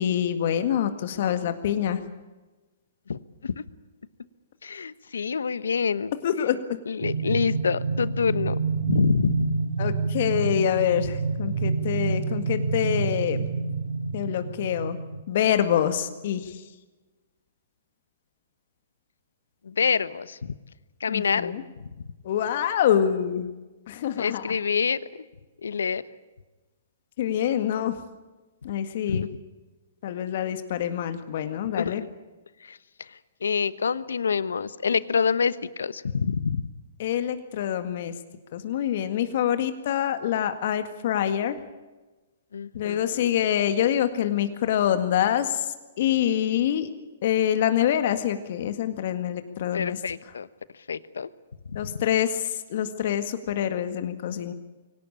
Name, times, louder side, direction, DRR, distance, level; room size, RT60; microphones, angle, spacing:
voice 1, 0.0-2.0 6.2-6.6 9.8-13.5 14.1-15.0 15.3-16.6 21.1-21.6 22.2-23.5 23.9-24.6 27.2-28.0 28.6-29.3 30.0-32.0 37.0-38.1 38.5-41.6 42.7-46.9 47.2-50.0 51.8-54.5, left 10 dB, 55° left, 9 dB, 1.9 m, -26 dB
voice 2, 3.1-3.6 4.6-6.1 6.9-9.6 19.6-20.5 21.0-21.5 24.2-25.0 25.6-26.0 29.1-29.3 31.8-31.9 32.6-32.8 33.4-36.7 42.5-43.3 49.7-50.5 50.9-51.3 51.8-51.9, left 6 dB, 80° left, 17 dB, 1.0 m, -27 dB
sound 1, 7.0-15.2, right 4 dB, 75° right, 1.8 m, -28 dB
24.0 x 18.0 x 8.7 m, 1.2 s
hypercardioid pair, 125°, 0 cm